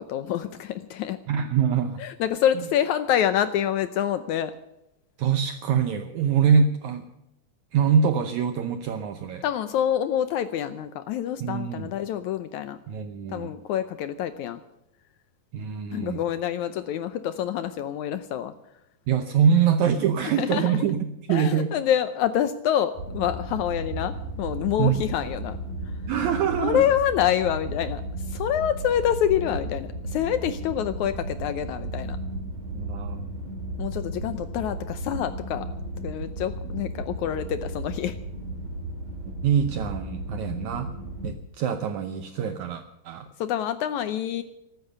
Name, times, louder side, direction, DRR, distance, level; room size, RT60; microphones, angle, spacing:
voice 1, 0.0-1.2 2.0-4.5 9.4-12.8 13.3-14.6 15.9-18.5 20.4-20.8 21.3-25.6 26.5-32.2 33.8-35.7 36.0-38.2 43.4-44.4, left 10 dB, 80° left, 12 dB, 1.8 m, -27 dB
voice 2, 1.3-2.0 5.2-7.0 7.7-9.4 11.4-11.9 12.9-13.5 15.5-16.2 19.1-21.7 24.8-25.0 26.1-26.8 32.7-33.3 39.2-40.9 41.2-43.3, right 7 dB, 70° right, 8 dB, 1.9 m, -24 dB
sound 1, 22.9-41.3, right 1 dB, 50° right, 4.2 m, -34 dB
14.5 x 14.0 x 6.7 m, 0.88 s
omnidirectional pair, 4.1 m